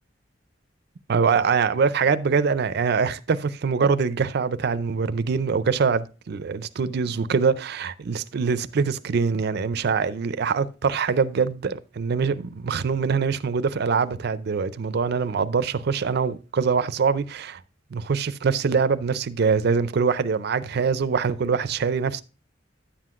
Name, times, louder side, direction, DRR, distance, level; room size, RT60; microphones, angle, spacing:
voice 1, 1.1-17.6 17.9-22.2, right 5 dB, 60° right, 0.4 m, -24 dB
10.0 x 7.6 x 2.4 m
head